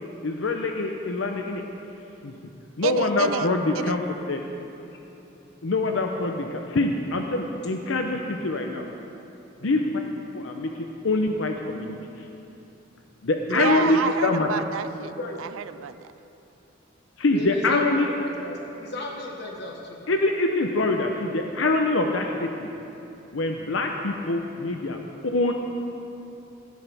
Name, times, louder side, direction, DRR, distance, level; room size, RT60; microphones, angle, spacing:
voice 1, 0.2-1.6 2.2-2.3 2.8-4.4 5.6-8.9 9.6-10.0 10.3-12.0 13.2-14.5 17.2-18.1 20.1-22.7 23.3-25.5, left 2 dB, 75° left, 3 dB, 0.8 m, -24 dB
voice 2, 2.8-3.5 3.7-3.9 13.5-15.1 15.4-16.0, right 8 dB, 85° right, 13 dB, 0.3 m, -29 dB
voice 3, 13.5-13.9 14.1-14.6 15.0-15.4 17.3-20.1, left 1 dB, 60° left, 0 dB, 1.5 m, -35 dB
17.0 x 12.0 x 3.5 m, 2.9 s
head